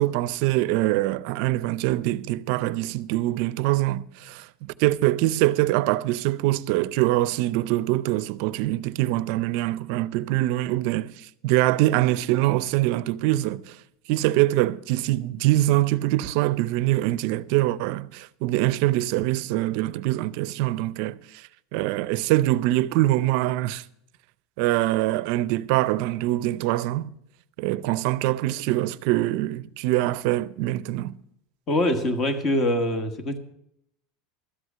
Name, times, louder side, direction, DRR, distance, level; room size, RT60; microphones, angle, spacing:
voice 1, 0.0-11.1 11.4-13.8 14.1-21.2 21.7-23.8 24.6-27.1 27.6-31.1, right 16 dB, 60° right, 0.5 m, -24 dB
voice 2, 31.7-33.4, left 1 dB, 30° left, 1.4 m, -24 dB
13.0 x 8.0 x 7.2 m
supercardioid pair, 155°, 0 cm